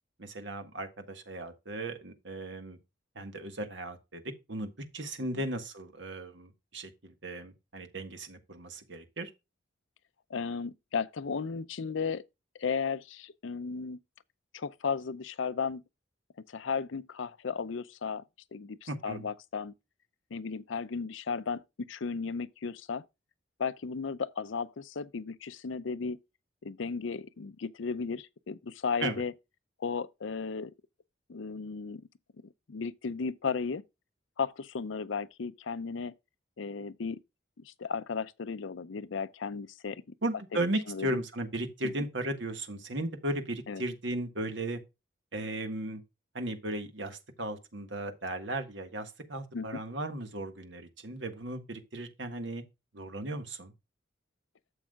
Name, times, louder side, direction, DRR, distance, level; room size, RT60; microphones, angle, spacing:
voice 1, 0.2-2.8 3.1-4.2 4.5-9.3 18.9-19.3 29.0-29.2 40.2-44.8 45.3-46.0 46.3-52.6 52.9-53.7, right 1 dB, 70° right, 1.6 m, -36 dB
voice 2, 10.3-12.2 12.6-14.0 14.5-15.8 16.5-18.2 18.5-19.7 20.3-23.0 23.6-26.2 26.6-29.3 29.8-30.7 31.3-32.0 32.7-33.8 34.4-36.1 36.6-37.2 37.6-40.0 40.9-41.2 41.8-41.9 43.7-43.8 49.5-49.8, left 5 dB, 80° left, 0.5 m, -35 dB
11.5 x 7.3 x 2.3 m
head